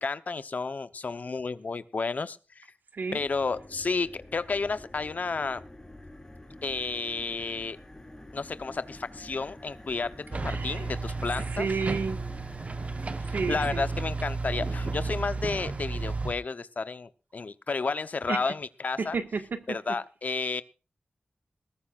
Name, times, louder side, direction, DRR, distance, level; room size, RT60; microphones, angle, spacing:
voice 1, 0.0-2.7 3.1-5.6 6.6-7.8 8.3-11.7 13.2-19.2 19.7-20.6, left 4 dB, 60° left, 12 dB, 0.9 m, -32 dB
sound 1, 3.1-13.6, left 1 dB, 15° left, 4.1 m, -48 dB
sound 2, 10.3-16.3, right 3 dB, 45° right, 1.1 m, -32 dB
voice 2, 10.4-11.0 11.3-12.2 13.3-13.8 18.3-18.4 19.0-19.8, right 4 dB, 90° right, 7 dB, 1.8 m, -32 dB
20.5 x 14.5 x 2.5 m, 0.34 s
wide cardioid pair, 100°, 3 cm